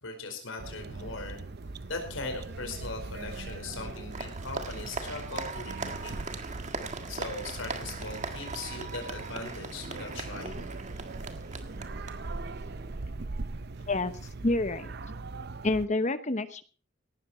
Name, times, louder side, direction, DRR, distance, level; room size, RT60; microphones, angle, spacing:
voice 1, 0.0-1.4 1.9-6.2 7.1-10.7, left 3 dB, 75° left, 4 dB, 5.0 m, -39 dB
sound 1, 0.6-15.9, right 3 dB, 55° right, 0.7 m, -40 dB
Applause, 2.8-12.9, right 4 dB, 35° right, 1.7 m, -40 dB
sound 2, 7.8-8.8 9.3-10.7 11.2-11.4 12.1-12.2 12.9-13.8, equal, 70° right, 6.9 m, -56 dB
voice 2, 14.4-14.9 15.6-16.6, left 2 dB, 35° left, 12 dB, 1.1 m, -28 dB
18.0 x 12.5 x 4.4 m, 0.38 s
head